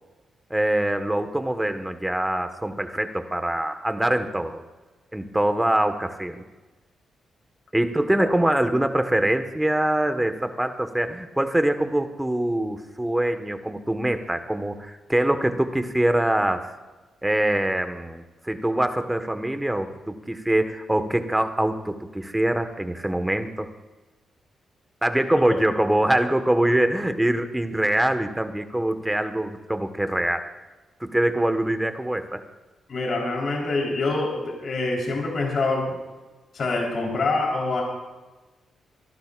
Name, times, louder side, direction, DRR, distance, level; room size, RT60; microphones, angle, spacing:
voice 1, 0.5-4.6 5.1-6.4 7.7-16.7 17.2-23.7 25.0-30.5 31.0-32.4, right 1 dB, 10° right, 8 dB, 1.5 m, -24 dB
voice 2, 32.9-36.0 36.5-37.8, left 3 dB, 55° left, -1 dB, 4.0 m, -25 dB
27.0 x 12.0 x 2.5 m, 1.2 s
cardioid pair, 70°, 0 cm